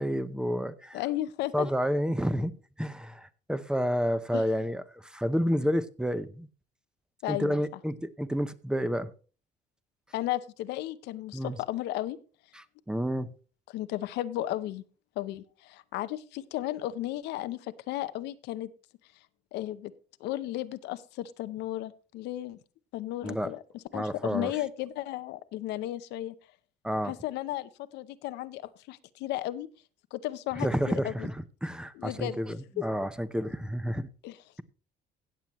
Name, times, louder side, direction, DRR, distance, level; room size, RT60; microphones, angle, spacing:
voice 1, 0.0-1.0 1.5-2.5 2.8-6.5 7.3-9.1 11.3-11.6 12.5-13.3 23.2-23.5 23.9-24.5 26.8-27.1 30.6-34.1, equal, 5° right, 0.7 m, -30 dB
voice 2, 0.9-1.7 4.3-4.4 7.2-7.6 10.1-12.2 13.7-14.8 15.2-18.7 19.5-19.9 20.2-22.6 22.9-23.6 23.9-26.3 27.1-29.7 30.1-31.3 32.0-32.4 32.8-32.9 34.2-34.4, left 14 dB, 85° left, 0.7 m, -34 dB
16.0 x 7.6 x 3.0 m
cardioid pair, 110°, 17 cm